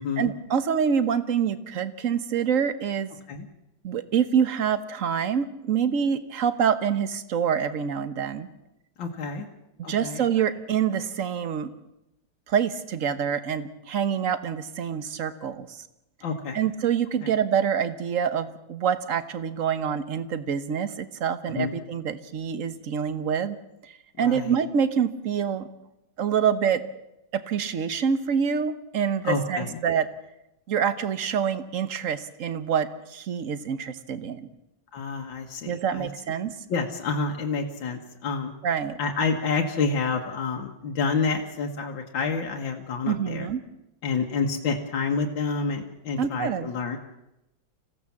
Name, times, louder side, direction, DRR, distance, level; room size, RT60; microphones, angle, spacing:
voice 1, 0.2-3.1 3.8-8.5 9.9-11.7 12.5-15.8 16.5-23.6 23.8-25.7 26.2-26.8 27.3-30.1 30.7-34.5 35.7-36.5 38.6-39.0 43.1-43.6 46.2-46.7, right 7 dB, 50° right, 12 dB, 1.4 m, -26 dB
voice 2, 9.0-9.5 9.8-10.2 16.2-16.6 17.2-17.3 21.5-21.7 24.2-24.6 29.2-29.8 34.9-36.1 36.7-38.5 39.0-43.5 44.0-47.0, left 4 dB, 75° left, 1 dB, 2.2 m, -28 dB
26.5 x 16.5 x 7.3 m, 0.88 s
omnidirectional pair, 2.1 m